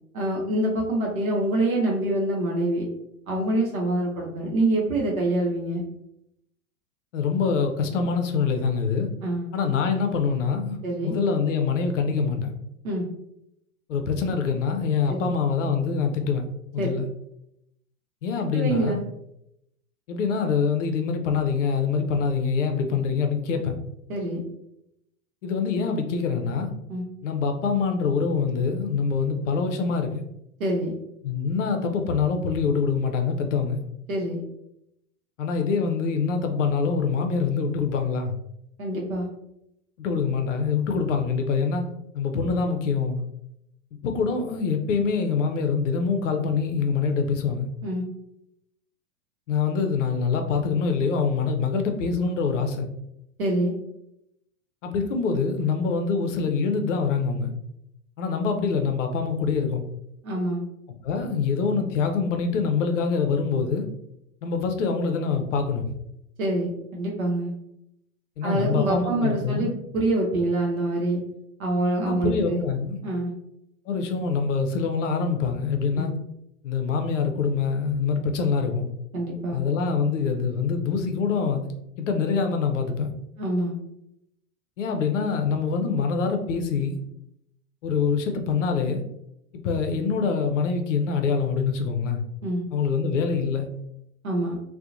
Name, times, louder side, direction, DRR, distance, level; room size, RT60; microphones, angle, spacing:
voice 1, 0.1-2.9 3.3-5.8 9.2-9.5 10.8-11.1 12.8-13.1 15.1-15.3 16.8-16.9 18.5-19.0 24.1-24.4 26.9-27.0 30.6-31.0 34.1-34.4 38.8-39.3 47.8-48.0 53.4-53.7 60.2-60.6 66.4-67.5 68.4-71.2 71.6-72.6 73.0-73.3 75.9-76.1 79.1-79.6 83.4-83.7 92.4-92.6 94.2-94.6, right 1 dB, 70° right, -2 dB, 0.7 m, -25 dB
voice 2, 7.1-9.1 9.5-10.8 11.0-12.5 13.9-16.5 16.7-17.1 18.2-19.0 20.1-23.8 25.4-26.7 27.2-30.2 31.2-33.8 35.4-38.3 40.0-41.8 42.1-43.2 44.0-47.7 49.5-52.9 54.8-57.5 58.2-59.8 61.0-63.9 64.4-65.8 68.4-69.7 72.0-73.0 73.9-76.1 76.6-78.9 79.5-81.7 82.0-83.1 84.8-87.0 87.8-89.0 89.5-92.2 92.7-93.7, left 5 dB, 60° left, 5 dB, 0.5 m, -25 dB
2.7 x 2.1 x 2.4 m, 0.80 s
figure-of-eight pair, 90°, 43 cm